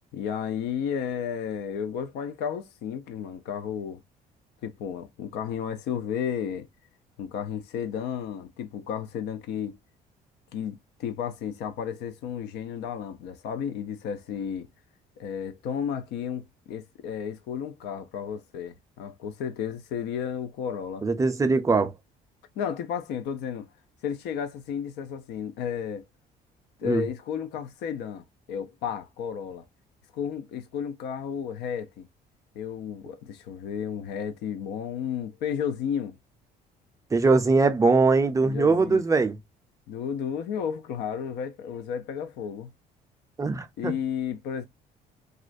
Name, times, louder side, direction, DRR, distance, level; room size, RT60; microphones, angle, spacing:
voice 1, 0.1-4.0 4.6-6.7 7.2-9.8 10.5-14.7 15.2-21.0 22.6-23.7 24.0-26.0 26.8-29.6 30.1-32.1 32.6-36.2 38.4-39.0 39.9-42.7 43.8-44.6, left 8 dB, 80° left, 0.4 m, -33 dB
voice 2, 21.0-21.9 26.8-27.0 37.1-39.4 43.4-43.9, right 3 dB, 20° right, 0.4 m, -21 dB
2.4 x 2.1 x 2.4 m
cardioid pair, 110°, 17 cm